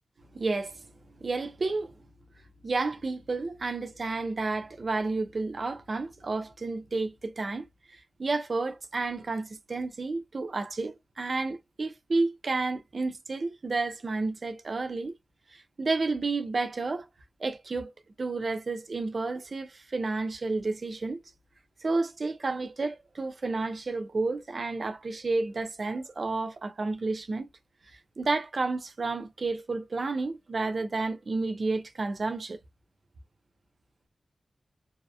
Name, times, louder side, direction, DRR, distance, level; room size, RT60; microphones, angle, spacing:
voice 1, 0.3-0.8 1.2-1.9 2.6-15.1 15.5-17.1 17.4-17.9 18.2-21.2 21.8-27.5 28.2-32.6, right 3 dB, 45° right, 0.5 m, -31 dB
2.7 x 2.1 x 2.3 m
wide cardioid pair, 130°, 0 cm